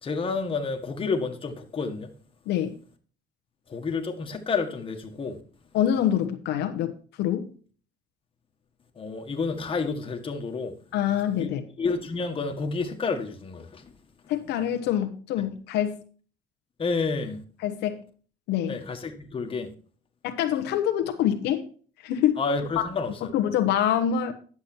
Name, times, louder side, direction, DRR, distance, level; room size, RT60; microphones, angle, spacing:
voice 1, 0.0-2.1 3.7-5.4 8.9-10.8 11.4-11.5 11.8-13.9 16.8-17.4 18.7-19.7 22.4-23.3, left 4 dB, 30° left, 1.7 m, -30 dB
voice 2, 2.5-2.8 5.7-7.5 10.9-11.6 14.3-16.0 17.6-18.0 18.5-18.8 20.2-21.7 22.0-22.4 23.3-24.3, left 10 dB, 85° left, 1.1 m, -25 dB
10.5 x 7.2 x 4.4 m
cardioid pair, 110°, 17 cm